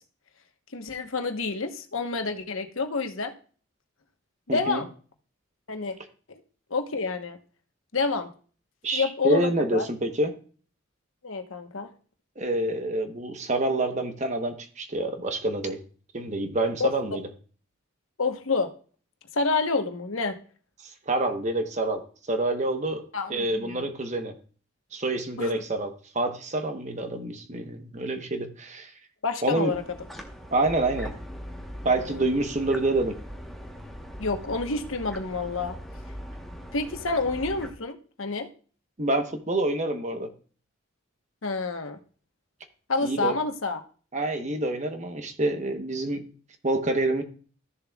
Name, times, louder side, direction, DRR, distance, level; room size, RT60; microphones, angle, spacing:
voice 1, 0.7-3.3 4.5-4.9 5.7-6.0 6.7-7.4 7.9-8.3 8.9-9.8 11.2-11.9 16.8-16.9 18.2-18.7 19.3-20.4 23.1-23.8 25.4-25.5 29.2-29.8 31.9-32.2 34.2-35.8 36.7-38.5 41.4-42.0 42.9-43.8, left 4 dB, 75° left, 6 dB, 1.1 m, -28 dB
voice 2, 4.5-4.8 8.8-10.3 12.4-15.8 16.1-17.2 21.1-22.0 22.3-23.0 23.3-24.3 24.9-28.9 29.4-29.7 30.5-31.1 31.8-33.2 39.0-40.3 43.0-43.4 44.1-46.3 46.6-47.2, right 2 dB, 35° right, 6 dB, 1.0 m, -27 dB
sound 1, 29.7-37.7, equal, ahead, 1.1 m, -40 dB
14.0 x 7.0 x 2.3 m, 0.41 s
head